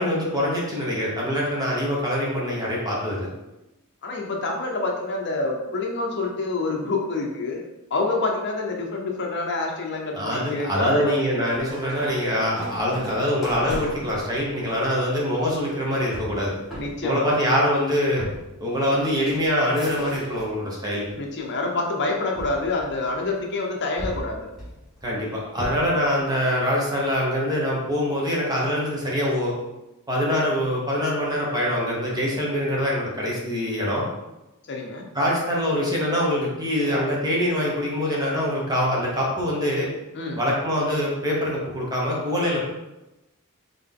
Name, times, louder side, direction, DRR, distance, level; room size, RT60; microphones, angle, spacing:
voice 1, 0.0-3.3 10.1-16.6 17.0-18.2 18.6-21.1 25.0-29.5 30.1-34.1 35.1-39.9 40.4-42.6, equal, 20° right, -4 dB, 1.1 m, -24 dB
voice 2, 4.0-7.6 7.9-11.2 11.5-11.7 16.8-17.4 21.1-24.5 34.7-35.0 40.1-40.4, left 3 dB, 55° left, 1 dB, 0.7 m, -27 dB
sound 1, 11.4-20.6 21.0-21.6 22.4-23.4 24.0-26.0, equal, ahead, 1.6 m, -38 dB
3.9 x 3.7 x 3.7 m, 0.99 s
head